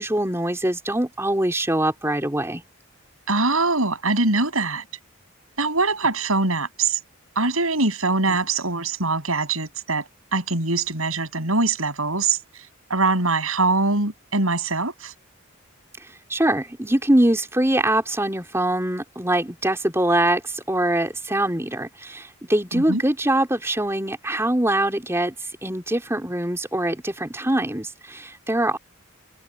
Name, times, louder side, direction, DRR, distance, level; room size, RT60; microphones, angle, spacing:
voice 1, 0.0-2.6 16.3-25.3 25.6-28.8, right 1 dB, 10° right, 3.9 m, -23 dB
voice 2, 3.3-4.8 5.6-7.0 7.4-12.4 12.9-15.1 22.7-23.0, right 3 dB, 85° right, 7.2 m, -23 dB
head